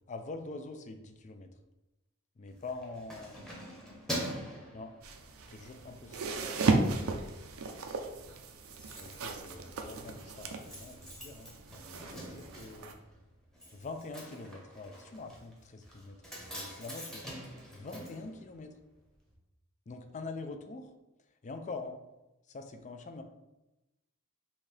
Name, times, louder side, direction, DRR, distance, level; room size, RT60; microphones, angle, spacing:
voice 1, 0.1-1.5 2.4-3.5 4.7-4.9 5.5-6.4 9.0-13.0 13.7-17.2 17.7-18.8 19.9-20.9 21.4-22.0 22.5-23.2, left 3 dB, 35° left, 7 dB, 0.4 m, -44 dB
Keys jangling, 2.5-5.6 6.0-6.3 6.6-7.3 7.6-7.7 7.9-8.0 8.2-19.0 19.3-19.4, equal, 5° left, 0.9 m, -45 dB
sound 1, 5.0-12.9, right 3 dB, 75° right, 0.5 m, -35 dB
5.7 x 2.7 x 3.3 m, 0.98 s
head